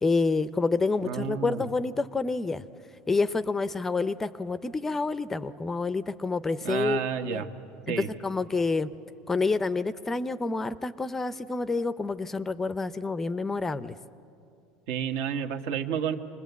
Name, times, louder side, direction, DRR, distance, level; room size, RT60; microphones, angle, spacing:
voice 1, 0.0-2.6 3.1-7.4 7.9-8.9 9.3-13.9, left 3 dB, 15° left, 14 dB, 0.5 m, -28 dB
voice 2, 1.0-1.6 6.6-7.5 7.9-8.1 14.9-16.2, right 8 dB, 75° right, 6 dB, 1.5 m, -30 dB
26.5 x 20.5 x 8.3 m, 2.7 s
cardioid pair, 150°, 3 cm